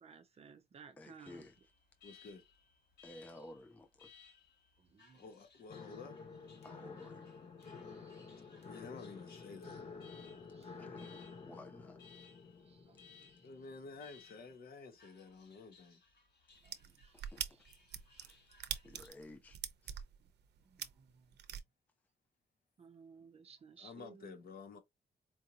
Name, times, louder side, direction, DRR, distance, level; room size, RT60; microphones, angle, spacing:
voice 1, 0.0-1.5 4.9-5.2 7.9-8.4 10.5-11.0 12.7-13.3 16.7-16.8 17.0-17.1 17.5-17.6 18.1-18.2 20.7-21.2 22.8-24.3, right 6 dB, 35° right, 0.6 m, -58 dB
voice 2, 1.0-1.6 3.0-4.1 6.6-7.3 10.8-12.0 17.3-17.4 18.2-18.3 18.8-19.6 19.8-20.0, left 1 dB, 10° left, 0.4 m, -54 dB
Alarm, 1.2-19.1, left 6 dB, 85° left, 3.2 m, -64 dB
voice 3, 2.0-2.4 5.1-6.2 8.6-9.9 13.4-16.0 23.8-24.8, left 4 dB, 60° left, 1.2 m, -51 dB
sound 1, 5.7-14.5, left 5 dB, 40° left, 0.8 m, -51 dB
sound 2, 16.6-21.6, right 9 dB, 90° right, 0.6 m, -43 dB
4.6 x 2.6 x 2.8 m
wide cardioid pair, 180°, 17 cm